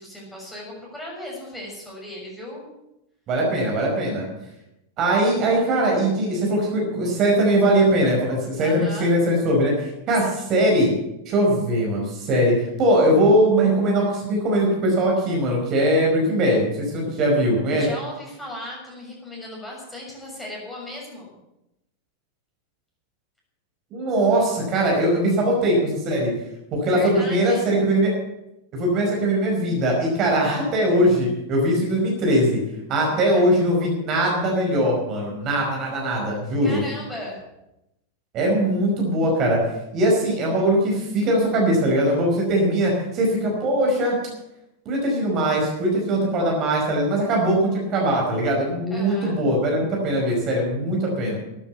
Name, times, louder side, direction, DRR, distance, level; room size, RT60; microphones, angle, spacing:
voice 1, 0.0-2.7 8.6-9.1 17.8-21.3 26.9-27.7 33.0-33.5 36.6-37.4 48.9-49.4, left 1 dB, 10° left, -3 dB, 6.9 m, -36 dB
voice 2, 3.3-4.3 5.0-10.9 11.2-17.9 23.9-26.3 26.7-28.1 28.7-32.6 32.9-36.8 38.3-39.6 39.9-44.2 44.8-51.4, right 1 dB, 35° right, -1 dB, 5.0 m, -21 dB
13.0 x 9.8 x 8.3 m, 0.89 s
figure-of-eight pair, 90°, 0 cm